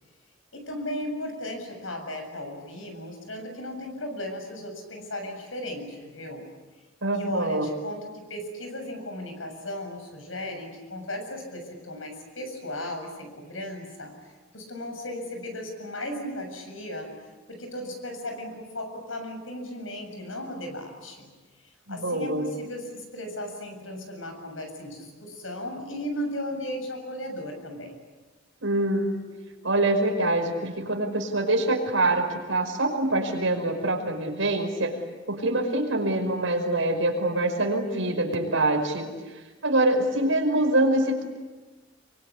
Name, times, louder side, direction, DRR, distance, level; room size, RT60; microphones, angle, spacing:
voice 1, 0.5-6.5 7.1-17.1 17.5-21.3 21.6-27.9, left 1 dB, 90° left, 5 dB, 7.2 m, -36 dB
voice 2, 7.0-7.7 21.9-22.5 28.6-29.1 29.6-34.9 35.3-39.1 39.6-41.2, right 2 dB, 80° right, 4 dB, 5.6 m, -25 dB
25.5 x 24.0 x 8.5 m, 1.2 s
head